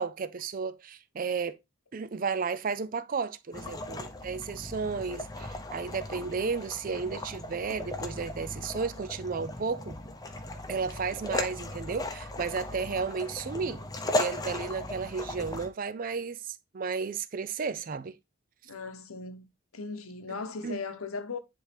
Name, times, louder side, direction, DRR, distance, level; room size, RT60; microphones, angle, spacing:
voice 1, 0.0-1.6 1.9-10.0 10.7-13.8 14.1-18.1 20.6-20.8, right 5 dB, 40° right, 0.4 m, -33 dB
sound 1, 3.5-15.7, left 1 dB, 20° left, 0.7 m, -37 dB
voice 2, 18.7-19.5 19.7-21.4, left 4 dB, 85° left, 0.9 m, -37 dB
10.0 x 3.5 x 3.4 m
head